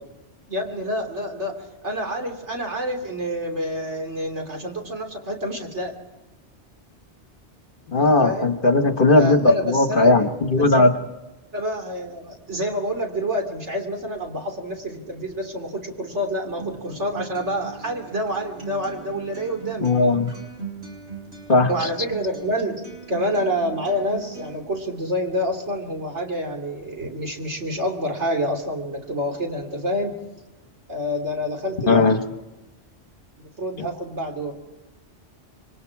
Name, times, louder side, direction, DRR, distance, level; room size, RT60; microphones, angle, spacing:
voice 1, 0.5-5.9 7.9-8.5 9.1-10.3 10.5-10.9 11.5-19.9 21.7-22.8 23.1-30.2 30.9-32.1 33.4-34.5, equal, 85° right, 2 dB, 3.6 m, -28 dB
voice 2, 7.9-10.9 19.8-20.3 21.5-21.7 31.9-32.2, left 2 dB, 50° left, 7 dB, 1.6 m, -17 dB
Acoustic guitar, 16.6-24.6, right 5 dB, 70° right, 4.4 m, -39 dB
27.0 x 23.5 x 4.8 m, 1.0 s
omnidirectional pair, 1.2 m